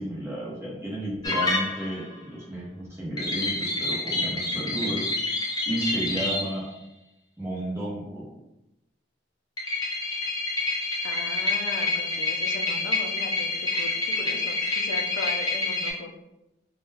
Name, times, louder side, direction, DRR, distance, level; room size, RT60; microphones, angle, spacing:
voice 1, 0.0-5.1 5.7-6.6 7.4-8.3, right 1 dB, 15° right, -5 dB, 0.7 m, -32 dB
sound 1, 1.2-2.1 3.2-6.5 9.6-15.9, left 2 dB, 20° left, 0.5 m, -28 dB
voice 2, 11.0-16.1, left 3 dB, 80° left, 3 dB, 0.4 m, -38 dB
2.2 x 2.1 x 3.2 m, 0.94 s
head